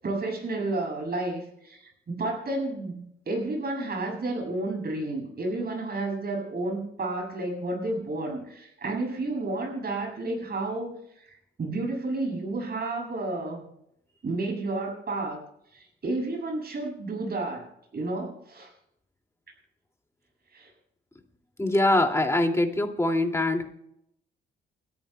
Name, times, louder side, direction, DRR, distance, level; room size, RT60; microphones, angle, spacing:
voice 1, 0.0-13.6 14.2-15.4 15.7-17.7 17.9-18.7 20.5-20.7, right 2 dB, 50° right, 1 dB, 7.4 m, -31 dB
voice 2, 21.6-23.7, left 1 dB, 15° left, 3 dB, 2.5 m, -23 dB
29.5 x 14.0 x 2.3 m, 0.78 s
supercardioid pair, 65°, 21 cm